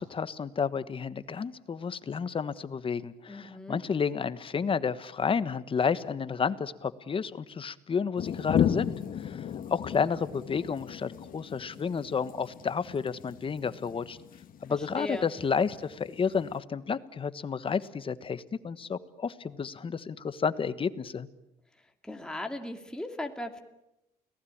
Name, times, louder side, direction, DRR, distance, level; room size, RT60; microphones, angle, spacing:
voice 1, 0.0-14.2 14.6-21.3, left 6 dB, 30° left, 14 dB, 1.3 m, -31 dB
voice 2, 3.3-3.8 14.7-15.3 22.0-23.6, left 1 dB, 5° left, 4 dB, 2.4 m, -37 dB
sound 1, 8.2-16.6, left 9 dB, 55° left, 1.8 m, -35 dB
29.5 x 18.5 x 8.8 m, 0.89 s
cardioid pair, 110°, 17 cm